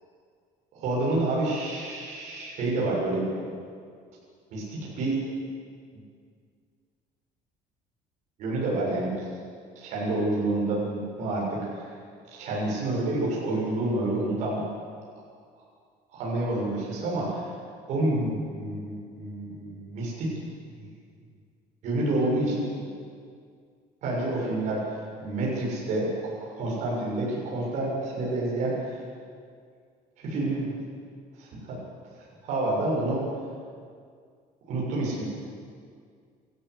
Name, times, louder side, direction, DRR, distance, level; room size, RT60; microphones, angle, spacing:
voice 1, 0.7-3.4 4.5-5.3 8.4-9.1 9.8-11.9 12.3-14.6 16.1-17.5 17.9-20.3 21.8-22.8 24.0-24.8 25.2-29.0 30.2-30.7 31.4-31.8 32.4-33.3 34.7-35.2, right 2 dB, 50° right, -5 dB, 7.1 m, -28 dB
27.0 x 14.0 x 8.3 m, 2.1 s
cardioid pair, 180°, 16 cm